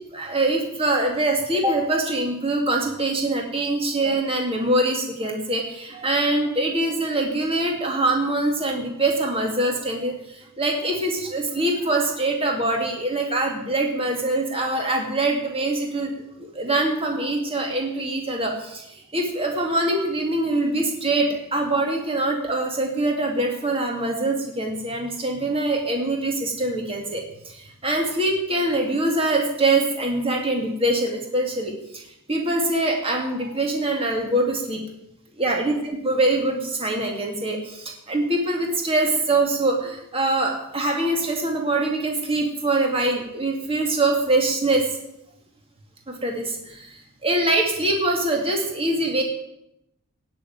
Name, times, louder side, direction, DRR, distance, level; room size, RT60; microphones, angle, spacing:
voice 1, 0.1-16.1 16.4-34.8 35.4-44.9 46.1-49.2, right 2 dB, 25° right, 1 dB, 2.4 m, -24 dB
17.0 x 6.9 x 9.5 m, 0.81 s
head